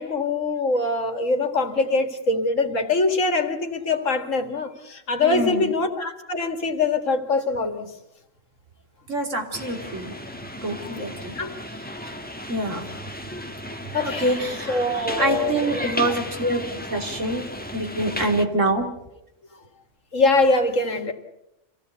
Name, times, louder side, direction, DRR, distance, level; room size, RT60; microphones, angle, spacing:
voice 1, 0.0-7.9 11.3-11.6 13.9-14.3 14.7-16.2 20.1-21.1, left 3 dB, 85° left, 6 dB, 2.5 m, -23 dB
voice 2, 5.2-5.7 9.1-10.1 10.6-11.4 12.0-12.1 12.5-12.9 14.0-16.6 16.9-17.5 17.7-18.9, right 1 dB, 75° right, 3 dB, 3.5 m, -25 dB
sound 1, 9.5-18.5, left 1 dB, 5° left, 1.5 m, -35 dB
26.5 x 16.5 x 8.3 m, 0.88 s
omnidirectional pair, 1.3 m